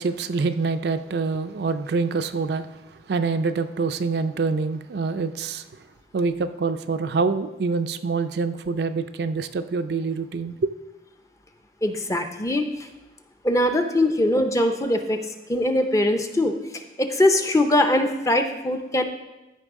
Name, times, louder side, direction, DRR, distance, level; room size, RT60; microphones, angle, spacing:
voice 1, 0.0-5.7 6.1-10.7, right 4 dB, 60° right, 9 dB, 0.4 m, -26 dB
voice 2, 11.8-12.9 13.4-15.2 15.5-19.0, left 1 dB, 15° left, 6 dB, 0.5 m, -22 dB
13.5 x 5.3 x 3.6 m, 1.0 s
head